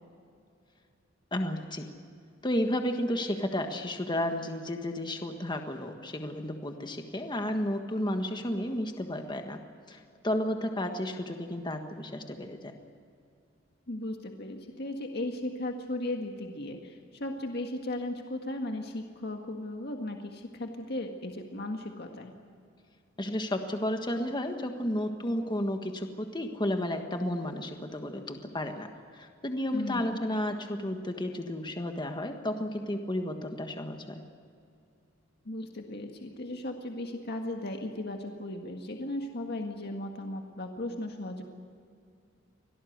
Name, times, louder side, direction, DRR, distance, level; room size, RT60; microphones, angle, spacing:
voice 1, 1.3-1.9 2.4-9.6 9.9-12.7 23.2-28.9 29.1-34.2, left 1 dB, 25° left, 5 dB, 1.5 m, -32 dB
voice 2, 13.9-22.3 29.7-30.2 35.5-41.4, left 1 dB, 55° left, 3 dB, 1.8 m, -36 dB
25.5 x 18.0 x 8.0 m, 2.4 s
head